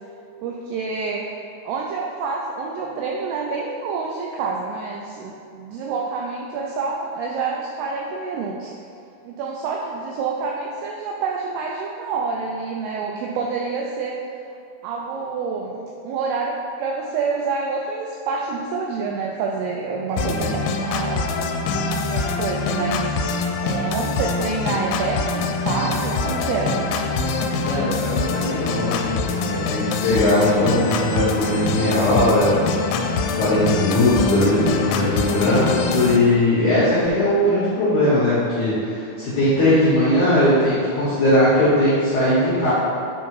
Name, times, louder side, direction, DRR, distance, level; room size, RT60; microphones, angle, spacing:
voice 1, 0.4-1.3 1.6-8.7 9.2-14.2 14.8-21.5 22.1-26.8, right 4 dB, 85° right, -1 dB, 2.3 m, -27 dB
sound 1, 20.2-36.2, left 3 dB, 90° left, 2.9 m, -24 dB
voice 2, 20.2-20.6 27.6-32.6 33.3-42.7, left 1 dB, 70° left, -10 dB, 1.9 m, -19 dB
7.9 x 3.6 x 4.7 m, 2.6 s
omnidirectional pair, 5.1 m